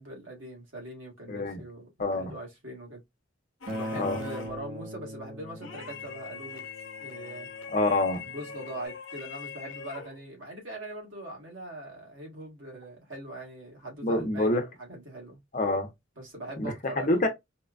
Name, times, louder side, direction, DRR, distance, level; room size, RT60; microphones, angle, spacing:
voice 1, 0.0-3.0 3.7-6.6 7.0-7.5 8.2-15.4 16.2-17.3, right 1 dB, 80° right, 1.5 m, -42 dB
voice 2, 1.3-1.6 2.0-2.3 4.0-4.2 7.7-8.2 14.0-14.6 15.5-15.9 16.6-17.3, left 2 dB, 40° left, 0.7 m, -26 dB
sound 1, 3.6-4.7 5.6-10.2, left 6 dB, 85° left, 0.7 m, -42 dB
Acoustic guitar, 3.7-8.9, equal, 45° right, 0.9 m, -41 dB
4.3 x 2.2 x 2.4 m
head